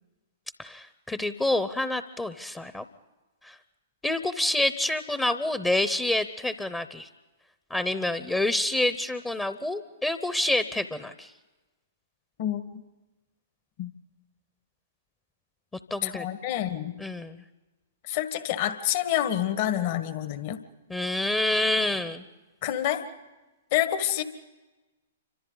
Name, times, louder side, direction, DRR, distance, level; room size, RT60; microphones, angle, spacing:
voice 1, 0.6-2.8 3.4-3.5 4.0-7.1 7.7-11.3 15.9-16.3 17.0-17.4 20.9-22.2, left 1 dB, 10° left, 12 dB, 0.8 m, -27 dB
voice 2, 12.4-12.8 13.8-13.9 16.0-17.0 18.0-20.6 22.6-23.0 23.7-24.2, left 12 dB, 45° left, 10 dB, 1.6 m, -28 dB
28.5 x 25.5 x 4.0 m, 1.1 s
figure-of-eight pair, 115°, 0 cm